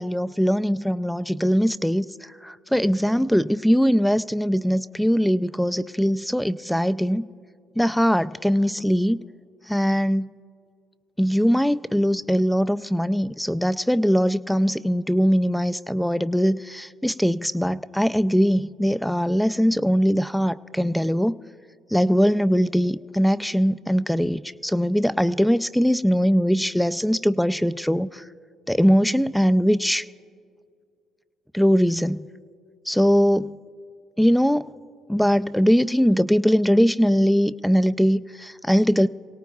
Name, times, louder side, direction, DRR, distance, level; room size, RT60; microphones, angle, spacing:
voice 1, 0.0-2.1 2.4-7.2 7.8-9.2 9.7-10.3 11.2-21.4 21.9-28.1 28.7-30.0 31.5-32.2 32.9-33.5 34.2-34.7 35.1-39.1, equal, ahead, 14 dB, 0.3 m, -21 dB
24.0 x 17.5 x 2.4 m, 2.3 s
supercardioid pair, 80°, 0 cm